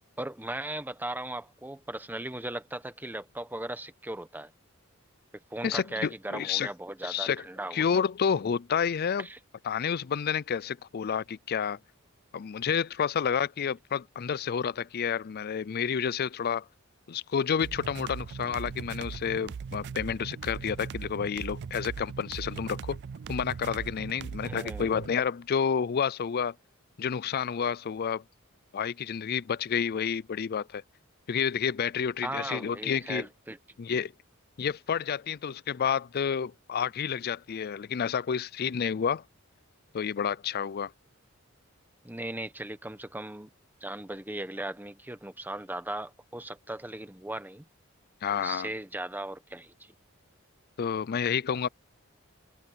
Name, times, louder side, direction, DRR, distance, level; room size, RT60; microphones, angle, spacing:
voice 1, 0.2-4.5 5.5-7.9 9.2-9.4 24.4-24.9 32.2-33.6 42.0-43.5 43.8-47.6 48.3-49.7, right 1 dB, 10° right, 1.1 m, -37 dB
voice 2, 5.6-6.7 7.0-7.4 7.7-9.3 9.7-11.8 12.3-16.7 17.1-23.0 23.3-26.5 27.0-28.2 28.7-30.8 31.3-33.3 33.8-34.1 34.6-39.2 39.9-40.9 48.2-48.7 50.8-51.7, left 7 dB, 45° left, 0.4 m, -30 dB
sound 1, 17.6-25.2, right 6 dB, 55° right, 0.4 m, -39 dB
open air
head